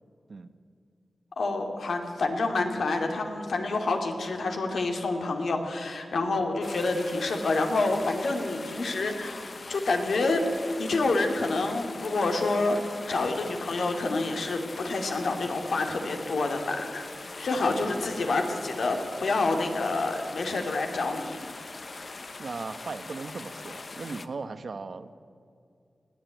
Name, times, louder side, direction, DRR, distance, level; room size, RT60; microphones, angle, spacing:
voice 1, 1.4-9.4 9.7-10.4 10.8-12.8 13.1-17.1 17.4-21.4 22.0-22.2, left 3 dB, 85° left, 4 dB, 2.6 m, -28 dB
sound 1, 6.6-24.3, left 3 dB, 45° left, 1.0 m, -42 dB
voice 2, 17.6-18.1 22.4-25.1, right 4 dB, 60° right, 11 dB, 1.1 m, -38 dB
20.5 x 14.5 x 9.2 m, 2.4 s
wide cardioid pair, 110°, 0 cm